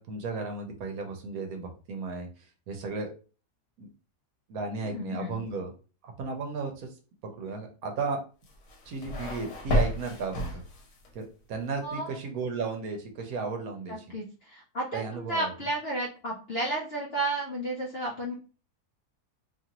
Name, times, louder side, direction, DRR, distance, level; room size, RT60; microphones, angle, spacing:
voice 1, 0.0-3.1 3.8-3.9 4.5-5.7 6.0-6.9 7.2-8.2 8.9-10.6 11.1-14.1 14.9-15.5, right 4 dB, 70° right, 4 dB, 1.1 m, -34 dB
voice 2, 4.8-5.4 11.8-12.1 13.9-18.3, right 2 dB, 60° left, -3 dB, 0.7 m, -32 dB
sound 1, 8.4-11.1, left 1 dB, 85° left, 1.3 m, -31 dB
2.9 x 2.5 x 2.8 m, 0.36 s
omnidirectional pair, 1.7 m